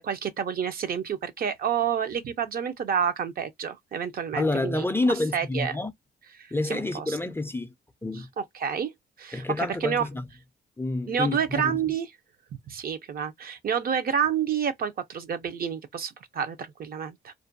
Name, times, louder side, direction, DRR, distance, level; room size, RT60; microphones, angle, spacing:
voice 1, 0.0-4.8 5.3-5.7 6.4-7.2 8.4-8.9 9.2-10.0 11.1-12.1 12.7-17.3, right 7 dB, 50° right, 0.5 m, -29 dB
voice 2, 4.4-5.9 6.5-7.7 8.0-8.3 9.3-10.2 10.8-11.8, left 2 dB, 10° left, 0.4 m, -28 dB
2.4 x 2.2 x 2.5 m
cardioid pair, 90°, 20 cm